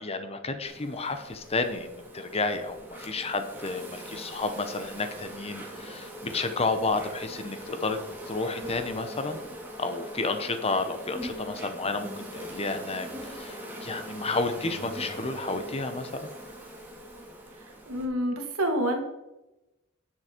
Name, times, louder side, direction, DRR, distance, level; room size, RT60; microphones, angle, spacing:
voice 1, 0.0-8.0 8.3-9.4 9.8-16.3, left 3 dB, 30° left, 8 dB, 0.8 m, -31 dB
Insect, 0.6-18.1, equal, 10° right, 1.8 m, -41 dB
voice 2, 17.9-19.0, equal, 75° right, 3 dB, 1.9 m, -27 dB
9.8 x 7.6 x 4.5 m, 0.98 s
head